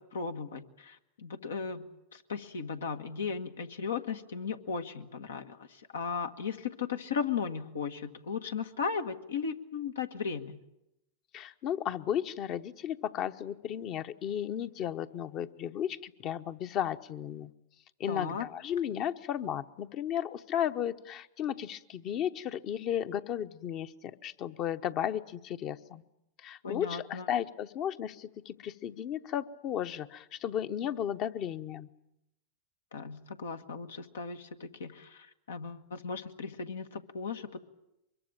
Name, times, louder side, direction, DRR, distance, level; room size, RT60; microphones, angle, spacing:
voice 1, 0.0-1.9 2.1-5.6 5.9-10.6 18.1-18.4 26.6-27.3 32.9-37.6, left 5 dB, 85° left, 7 dB, 1.5 m, -36 dB
voice 2, 11.3-17.5 18.0-26.0 26.4-31.9, left 10 dB, 45° left, 10 dB, 1.0 m, -34 dB
23.5 x 22.5 x 9.0 m, 0.85 s
hypercardioid pair, 100°, 0 cm